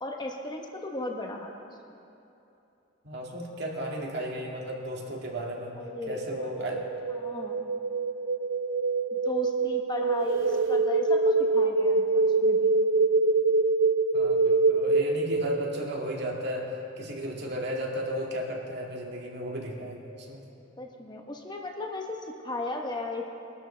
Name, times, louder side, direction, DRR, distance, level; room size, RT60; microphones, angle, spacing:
voice 1, 0.0-2.0 5.8-6.5 7.1-7.7 9.1-12.7 20.8-23.3, left 2 dB, 25° left, 2 dB, 1.0 m, -36 dB
voice 2, 3.0-5.8 6.1-6.8 14.1-20.4, equal, 60° right, -1 dB, 2.2 m, -34 dB
sound 1, 5.9-15.8, right 3 dB, 80° right, 0.6 m, -25 dB
22.5 x 12.5 x 3.4 m, 2.8 s
head